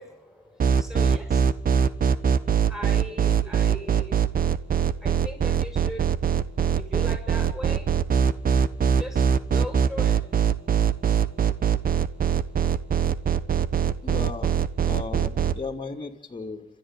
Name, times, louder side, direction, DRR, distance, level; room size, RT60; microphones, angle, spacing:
voice 1, 0.0-2.0 2.6-4.1 5.0-6.1 6.8-10.2, equal, ahead, 2 dB, 7.6 m, -39 dB
sound 1, 0.6-15.5, right 8 dB, 45° right, 1.3 m, -22 dB
voice 2, 14.0-14.5 14.9-16.7, left 4 dB, 25° left, 6 dB, 3.0 m, -35 dB
27.0 x 13.0 x 9.2 m, 0.69 s
cardioid pair, 90°, 20 cm